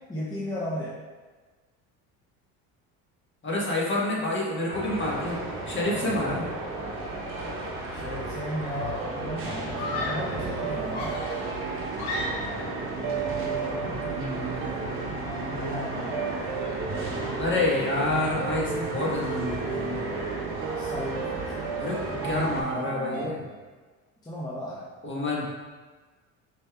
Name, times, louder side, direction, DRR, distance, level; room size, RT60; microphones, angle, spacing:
voice 1, 0.1-1.0 5.9-6.4 7.9-11.2 12.9-13.9 15.5-16.5 20.8-23.6 24.2-24.9, equal, 10° left, -7 dB, 0.6 m, -35 dB
voice 2, 3.4-6.4 13.8-14.6 17.4-20.1 21.8-23.4 25.0-25.6, left 2 dB, 25° left, -4 dB, 1.2 m, -28 dB
sound 1, 4.7-22.6, right 2 dB, 30° right, 1.0 m, -34 dB
sound 2, 9.7-23.3, right 6 dB, 60° right, 0.7 m, -35 dB
Screaming, 9.8-10.4 10.9-12.7, left 2 dB, 65° left, 1.0 m, -34 dB
5.2 x 3.3 x 2.2 m, 1.4 s
supercardioid pair, 80°, 43 cm